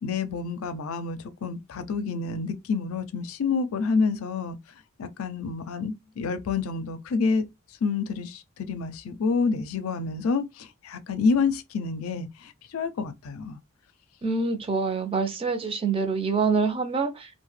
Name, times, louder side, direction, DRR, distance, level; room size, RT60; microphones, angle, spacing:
voice 1, 0.0-4.6 5.0-7.5 7.8-13.6, left 4 dB, 75° left, 0.4 m, -28 dB
voice 2, 14.2-17.3, right 4 dB, 25° right, 0.5 m, -26 dB
2.7 x 2.1 x 3.1 m
head